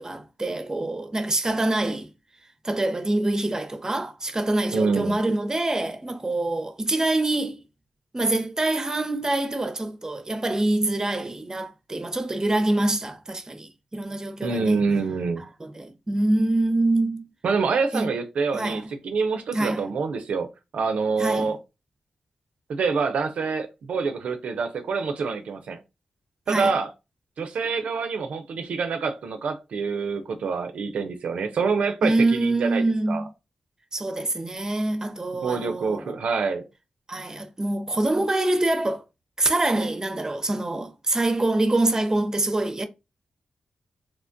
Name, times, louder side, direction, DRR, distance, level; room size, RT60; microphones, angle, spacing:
voice 1, 0.0-2.1 2.6-7.6 8.1-14.8 15.6-17.3 17.9-18.1 18.5-18.8 19.5-19.8 21.2-21.5 26.5-26.8 32.0-33.3 33.9-36.1 37.1-39.0 39.4-42.9, right 2 dB, 25° right, 0.5 m, -25 dB
voice 2, 4.7-5.2 14.4-15.4 17.4-21.6 22.7-25.8 26.5-26.9 27.4-33.2 35.4-36.6, right 4 dB, 80° right, 0.4 m, -26 dB
3.0 x 2.1 x 2.5 m
cardioid pair, 50°, 2 cm